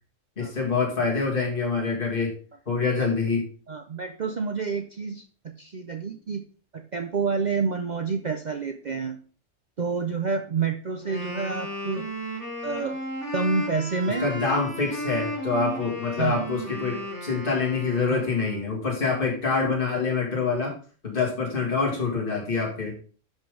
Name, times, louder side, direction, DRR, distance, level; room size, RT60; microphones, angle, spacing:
voice 1, 0.4-2.3 2.7-3.5 14.2-20.7 21.0-22.9, left 4 dB, 45° left, -2 dB, 2.7 m, -26 dB
voice 2, 3.7-6.4 6.7-9.2 9.8-12.1 12.6-13.0 13.3-14.3 16.2-16.5 18.1-18.2, right 4 dB, 45° right, 5 dB, 0.6 m, -28 dB
Wind instrument woodwind instrument, 11.0-18.7, equal, 65° left, 3.8 m, -35 dB
11.0 x 5.3 x 3.8 m, 0.40 s
omnidirectional pair, 1.3 m